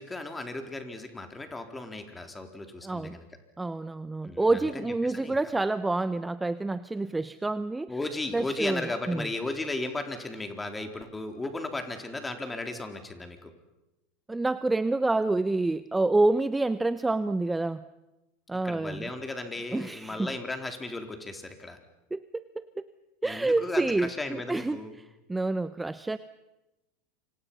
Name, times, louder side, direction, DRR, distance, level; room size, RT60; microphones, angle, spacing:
voice 1, 0.0-3.3 4.2-5.4 7.9-13.5 18.6-21.8 23.2-25.0, left 2 dB, 15° left, 6 dB, 3.9 m, -36 dB
voice 2, 2.8-3.2 3.6-7.9 8.3-9.3 14.3-17.8 18.5-19.1 19.7-20.3 22.1-22.6 23.2-24.8 25.3-26.2, right 2 dB, 10° right, 15 dB, 0.8 m, -28 dB
28.0 x 26.0 x 5.7 m, 0.99 s
hypercardioid pair, 85°, 0 cm